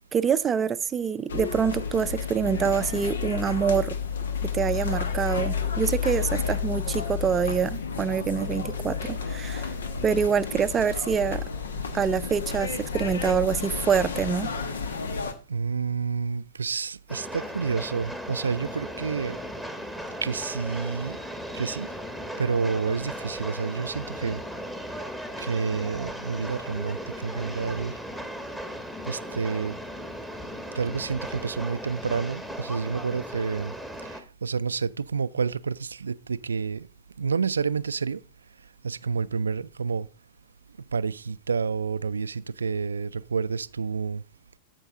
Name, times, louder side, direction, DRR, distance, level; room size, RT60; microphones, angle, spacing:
voice 1, 0.1-3.9 4.5-9.7 10.0-11.4 11.9-14.5, right 7 dB, 25° right, 0.5 m, -26 dB
sound 1, 1.3-15.3, left 6 dB, 80° left, 1.1 m, -31 dB
voice 2, 15.5-19.4 20.2-21.2 21.5-21.9 22.4-24.4 25.4-28.0 29.1-29.8 30.8-33.7 34.0-34.1 34.4-36.9 37.2-38.2 38.8-40.1 40.9-44.2, right 5 dB, 85° right, 0.3 m, -29 dB
Train, 17.1-34.2, equal, 5° left, 1.3 m, -37 dB
13.5 x 5.4 x 3.6 m
hypercardioid pair, 100°, 0 cm